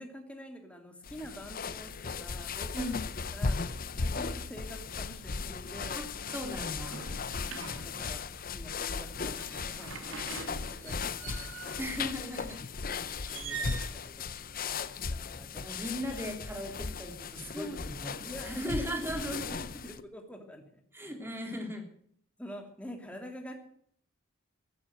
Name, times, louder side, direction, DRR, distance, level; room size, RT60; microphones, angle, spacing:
voice 1, 0.0-2.9 3.3-6.0 6.9-11.5 13.2-15.8 16.6-16.7 17.5-17.9 18.2-19.1 19.4-20.8 22.4-23.6, equal, 5° left, 3 dB, 2.9 m, -46 dB
sound 1, 1.0-20.0, left 5 dB, 45° left, 0.8 m, -37 dB
voice 2, 2.7-3.0 5.9-6.1 6.3-7.0 11.8-12.6 15.6-19.6 20.9-21.8, equal, 10° right, 4 dB, 3.3 m, -37 dB
sound 2, 6.6-8.3 9.1-11.9 13.2-13.9, right 5 dB, 75° right, 2.4 m, -43 dB
15.0 x 12.0 x 8.0 m, 0.63 s
head